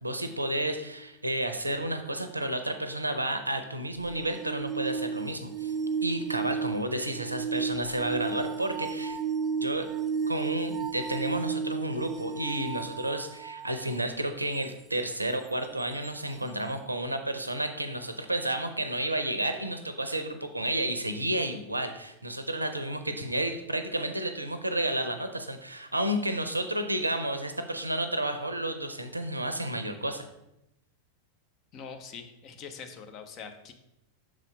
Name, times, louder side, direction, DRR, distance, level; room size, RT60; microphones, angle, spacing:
voice 1, 0.0-5.7 6.0-9.2 9.6-9.9 10.3-30.3, right 1 dB, 85° right, 8 dB, 0.6 m, -31 dB
sound 1, 4.0-13.7 16.0-16.1, right 6 dB, 20° right, 0.4 m, -33 dB
voice 2, 31.7-33.7, left 6 dB, 35° left, 6 dB, 0.7 m, -43 dB
6.2 x 4.2 x 4.9 m, 0.87 s
figure-of-eight pair, 90°, 0 cm